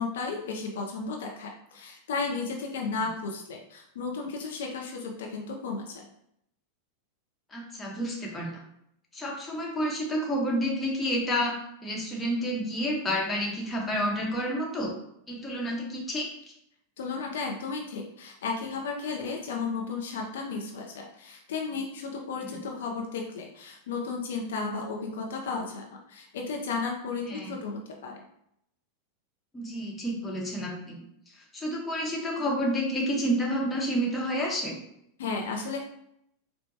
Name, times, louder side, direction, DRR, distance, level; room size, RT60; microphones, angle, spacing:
voice 1, 0.0-6.0 17.0-28.2 35.2-35.8, left 4 dB, 70° left, 1 dB, 0.5 m, -34 dB
voice 2, 7.5-8.6 9.1-14.9 15.3-16.3 22.4-22.5 27.2-27.6 29.5-31.0 31.3-34.8, equal, 20° left, -1 dB, 1.0 m, -30 dB
4.4 x 2.1 x 2.7 m, 0.76 s
hypercardioid pair, 95°, 0 cm